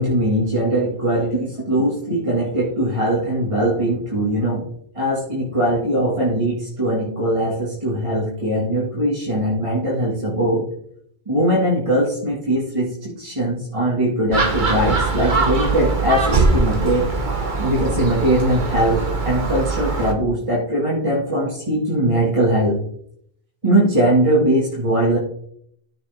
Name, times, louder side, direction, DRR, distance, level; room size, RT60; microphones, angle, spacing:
voice 1, 0.0-4.7 4.9-10.6 11.3-17.1 17.6-22.8 23.6-25.2, right 1 dB, 30° right, -5 dB, 2.1 m, -20 dB
Gull seagull, 14.3-20.1, right 3 dB, 50° right, 1.5 m, -21 dB
14.5 x 6.0 x 3.5 m, 0.67 s
omnidirectional pair, 1.0 m